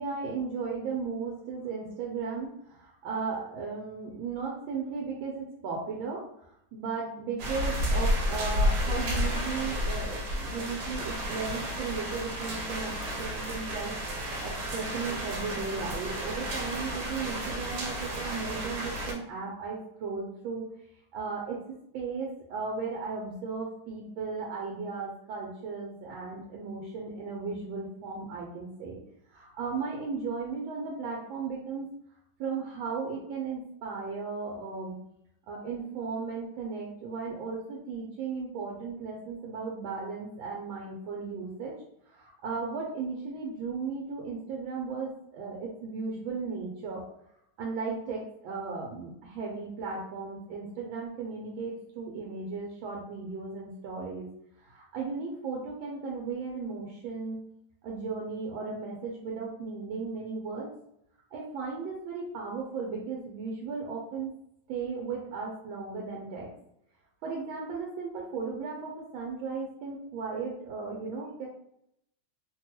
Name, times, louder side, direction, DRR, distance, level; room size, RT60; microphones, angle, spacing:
voice 1, 0.0-14.0 14.4-20.7 21.1-21.6 21.9-29.0 29.3-31.9 32.4-35.0 35.5-41.7 42.1-47.0 47.6-54.3 54.6-57.4 57.8-60.7 61.3-64.3 64.7-66.5 67.2-71.5, right 4 dB, 90° right, -2 dB, 1.4 m, -36 dB
sound 1, 7.4-19.1, equal, 70° right, 1.4 m, -31 dB
3.3 x 2.2 x 2.9 m, 0.74 s
omnidirectional pair, 2.1 m